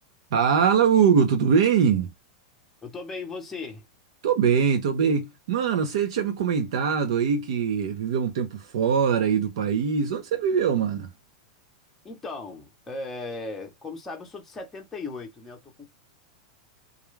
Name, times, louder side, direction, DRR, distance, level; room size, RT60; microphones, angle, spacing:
voice 1, 0.3-2.1 4.2-11.1, right 7 dB, 65° right, 0.6 m, -22 dB
voice 2, 2.8-3.8 12.0-15.9, left 3 dB, 10° left, 0.7 m, -37 dB
2.3 x 2.2 x 3.1 m
supercardioid pair, 170°, 3 cm